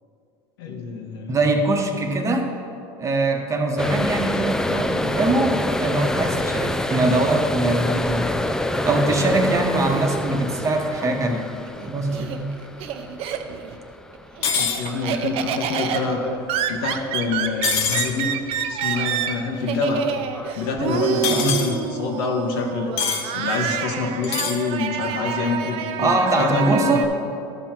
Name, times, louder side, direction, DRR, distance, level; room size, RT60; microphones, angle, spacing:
voice 1, 0.6-1.4 14.4-16.2 16.7-18.3 18.7-20.1 20.6-22.9 23.3-27.0, left 4 dB, 85° left, 1 dB, 1.5 m, -26 dB
voice 2, 1.3-2.5 3.0-8.3 8.7-11.5 11.8-12.5 21.3-21.6 26.0-27.1, right 2 dB, 25° right, 3 dB, 1.0 m, -22 dB
freighttrain at Lueneburg station, 3.8-18.6 18.9-19.3 19.7-21.1, left 1 dB, 5° left, 0.3 m, -28 dB
Laughter, 11.7-13.8 14.1-27.0, right 8 dB, 50° right, 0.6 m, -28 dB
sound 1, 14.4-14.8 17.6-18.1 21.2-21.7 23.0-23.2 24.2-24.6, left 6 dB, 60° left, 1.1 m, -23 dB
12.5 x 5.5 x 4.5 m, 2.7 s
supercardioid pair, 120°, 12 cm